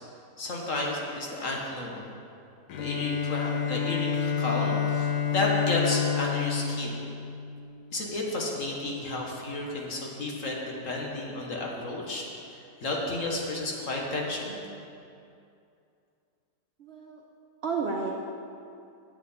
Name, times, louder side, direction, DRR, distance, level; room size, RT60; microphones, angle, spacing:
voice 1, 0.4-2.0 2.8-7.0 7.9-10.6 10.8-12.2 12.5-14.6, left 2 dB, 50° left, -1 dB, 1.5 m, -32 dB
Bowed string instrument, 2.7-8.2, left 7 dB, 65° left, 1.1 m, -29 dB
voice 2, 16.8-17.2 17.6-18.2, right 4 dB, 60° right, 0 dB, 0.6 m, -31 dB
8.9 x 8.2 x 4.2 m, 2.5 s
omnidirectional pair, 1.9 m